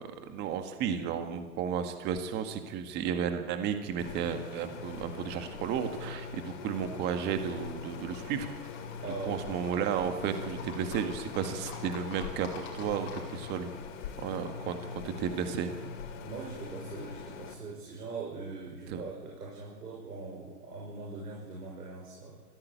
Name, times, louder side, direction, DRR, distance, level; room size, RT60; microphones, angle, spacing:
voice 1, 0.0-8.5 9.3-13.7 14.2-14.8 15.0-15.7 18.9-19.0, right 7 dB, 20° right, 7 dB, 1.8 m, -33 dB
sound 1, 4.0-17.5, left 5 dB, 50° left, 4.1 m, -42 dB
Livestock farm animals working animals, 4.7-13.6, left 5 dB, 25° left, 5.1 m, -50 dB
voice 2, 9.0-9.5 16.2-22.4, right 4 dB, 80° right, -1 dB, 6.3 m, -41 dB
23.0 x 16.5 x 8.4 m, 1.3 s
hypercardioid pair, 145°, 46 cm